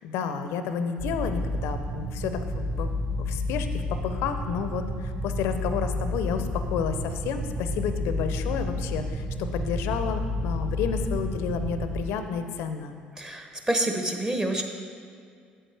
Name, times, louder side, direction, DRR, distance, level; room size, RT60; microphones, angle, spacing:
voice 1, 0.0-12.9, left 6 dB, 65° left, 8 dB, 0.5 m, -31 dB
sound 1, 1.0-12.0, left 1 dB, 50° right, 1.4 m, -30 dB
voice 2, 13.2-14.6, right 1 dB, 15° right, 4 dB, 1.0 m, -27 dB
7.9 x 7.6 x 3.4 m, 2.2 s
hypercardioid pair, 55°, 5 cm